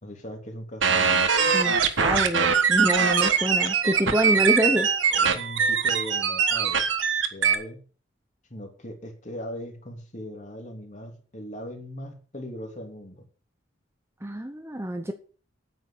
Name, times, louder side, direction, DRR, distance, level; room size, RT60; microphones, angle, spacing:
voice 1, 0.0-1.2 5.1-6.9 7.3-7.8 8.5-13.3, equal, 40° left, 3 dB, 2.8 m, -39 dB
sound 1, 0.8-7.5, right 6 dB, 70° right, 1.5 m, -22 dB
voice 2, 1.5-4.9 14.2-15.1, right 1 dB, 15° right, 7 dB, 0.9 m, -26 dB
9.2 x 9.1 x 6.3 m, 0.39 s
head